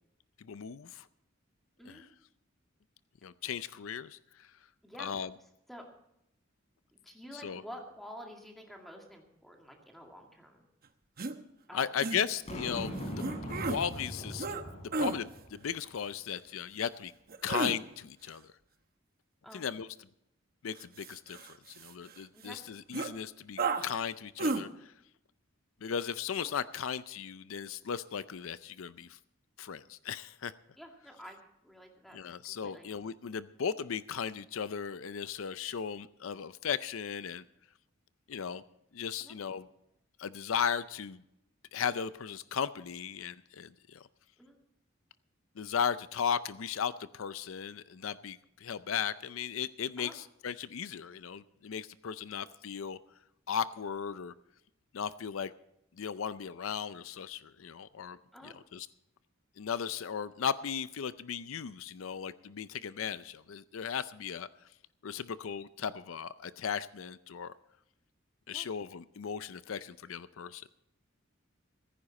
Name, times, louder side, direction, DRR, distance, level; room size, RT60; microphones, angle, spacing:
voice 1, 0.4-1.0 1.9-2.0 3.2-4.2 5.0-5.3 7.3-7.6 11.7-14.5 15.0-17.1 17.4-18.4 19.5-19.9 20.6-21.4 21.7-24.9 25.8-29.2 29.6-30.5 32.1-37.4 38.3-38.6 38.9-39.7 40.2-41.2 41.7-44.1 45.6-53.0 53.5-54.3 54.9-55.5 56.0-58.2 58.4-58.9 59.6-64.5 65.0-67.5 68.5-70.7, left 7 dB, 75° left, 15 dB, 0.5 m, -36 dB
voice 2, 4.8-5.2 5.7-5.9 6.9-10.7 11.7-12.2 19.4-19.7 22.3-22.6 26.4-26.5 30.8-31.4 31.6-32.2 32.5-32.9 39.2-39.3 44.4-44.6 50.0-50.1 58.3-58.5 68.5-68.7, equal, ahead, 1 dB, 2.3 m, -49 dB
sound 1, 11.2-11.3 12.0-12.2 13.2-13.8 14.4-14.6 14.9-15.2 17.3-17.8 20.8-22.1 22.5-22.6 22.9-23.1 23.6-23.9 24.4-24.6, right 3 dB, 45° right, 1.0 m, -33 dB
Boom, 12.5-15.8, equal, 35° left, 4.0 m, -40 dB
15.5 x 15.0 x 4.2 m, 0.81 s
head